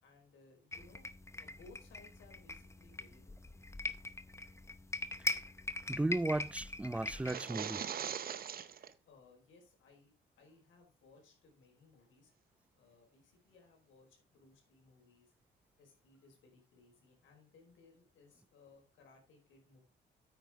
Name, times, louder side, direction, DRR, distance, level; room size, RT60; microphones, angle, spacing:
voice 1, 0.0-1.1 1.4-3.4 9.1-10.1 10.4-12.3 12.7-15.3 15.8-19.8, left 3 dB, 75° left, 4.5 m, -63 dB
sound 1, 0.7-7.3, left 2 dB, 15° left, 0.8 m, -42 dB
voice 2, 5.9-7.8, right 2 dB, 5° right, 0.4 m, -35 dB
sound 2, 7.1-8.9, right 8 dB, 50° right, 0.8 m, -41 dB
9.1 x 9.0 x 3.6 m
cardioid pair, 90°, 20 cm